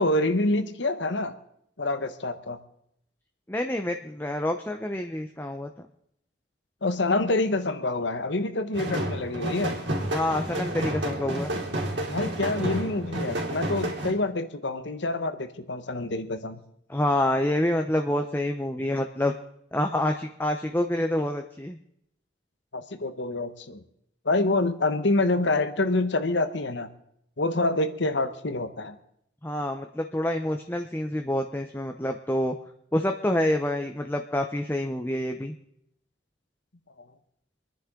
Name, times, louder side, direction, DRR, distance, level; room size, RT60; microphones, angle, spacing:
voice 1, 0.0-1.3 1.8-2.6 6.8-9.8 12.1-16.6 22.7-23.8 24.2-26.9 27.4-29.0 37.0-37.1, left 2 dB, 65° left, 10 dB, 1.1 m, -26 dB
voice 2, 3.5-5.7 10.1-11.5 16.9-19.3 19.7-21.8 29.4-32.5 32.9-35.6, left 1 dB, 10° left, 5 dB, 0.6 m, -27 dB
sound 1, 8.7-14.1, right 1 dB, 65° right, 3.3 m, -30 dB
26.5 x 10.5 x 3.7 m, 0.74 s
head